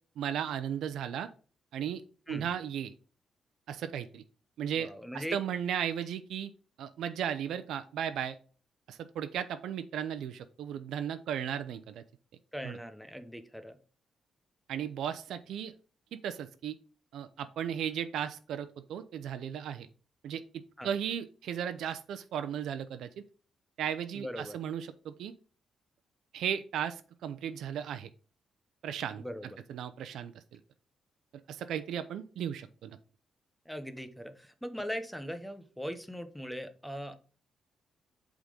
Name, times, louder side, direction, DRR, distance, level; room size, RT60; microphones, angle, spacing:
voice 1, 0.2-1.3 1.7-2.0 2.3-2.9 3.7-4.2 4.6-6.5 6.8-8.4 8.9-12.0 12.6-12.8 14.7-15.7 16.1-16.8 17.1-19.9 20.2-20.4 20.8-23.2 23.8-25.3 26.3-28.1 28.8-29.2 29.7-30.6 31.5-33.0, right 9 dB, 85° right, 10 dB, 0.6 m, -35 dB
voice 2, 4.8-5.4 12.5-13.8 20.8-20.9 24.1-24.6 29.2-29.6 33.6-37.3, equal, ahead, 9 dB, 0.8 m, -40 dB
8.1 x 3.8 x 5.0 m, 0.38 s
wide cardioid pair, 165°, 0 cm